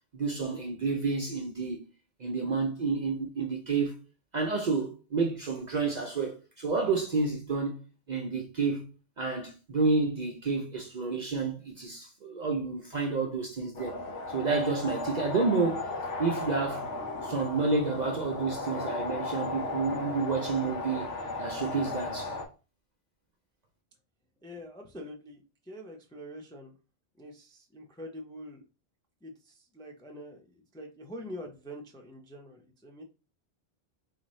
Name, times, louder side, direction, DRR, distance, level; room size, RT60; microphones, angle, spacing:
voice 1, 0.1-1.8 2.2-4.0 4.3-7.8 8.1-8.9 9.2-14.0 14.3-15.9 16.2-16.9 17.2-21.1 21.4-22.4, right 4 dB, 55° right, 0.5 m, -30 dB
sound 1, 13.7-22.4, left 2 dB, 85° left, 1.0 m, -36 dB
voice 2, 24.4-25.4 25.7-26.7 27.2-28.6 29.2-33.0, equal, 5° left, 0.3 m, -45 dB
4.1 x 2.6 x 3.0 m
omnidirectional pair, 1.2 m